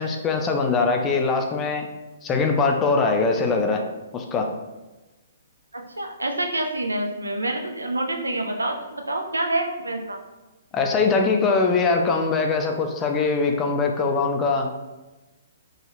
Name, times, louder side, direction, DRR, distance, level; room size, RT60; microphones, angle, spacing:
voice 1, 0.0-1.9 2.2-3.8 4.1-4.5 10.7-14.7, left 4 dB, 20° left, 3 dB, 0.3 m, -22 dB
voice 2, 5.7-10.2, right 1 dB, 80° right, 3 dB, 0.4 m, -27 dB
2.7 x 2.3 x 2.9 m, 1.1 s
figure-of-eight pair, 120°, 0 cm